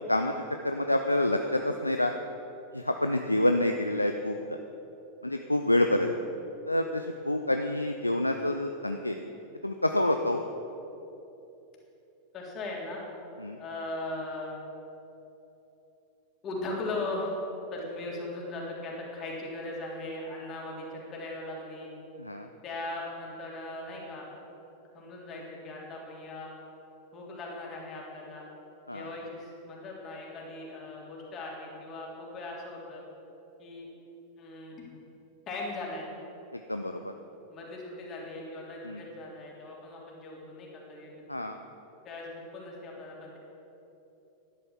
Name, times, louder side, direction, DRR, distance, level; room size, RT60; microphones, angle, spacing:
voice 1, 0.6-2.1 2.7-4.4 5.2-6.1 6.7-9.2 9.6-10.4 13.4-13.6 22.2-22.5 28.9-29.1 36.5-37.1 38.8-39.0 41.3-41.6, left 1 dB, 85° left, 6 dB, 0.5 m, -27 dB
voice 2, 12.3-13.0 13.6-14.6 16.4-17.4 17.7-21.9 22.6-24.3 24.9-26.5 27.1-28.5 28.9-33.0 33.6-33.9 34.4-34.9 35.5-36.1 37.5-41.4 42.0-43.4, left 2 dB, 30° left, -2 dB, 3.4 m, -39 dB
12.0 x 11.0 x 7.2 m, 3.0 s
figure-of-eight pair, 90°, 0 cm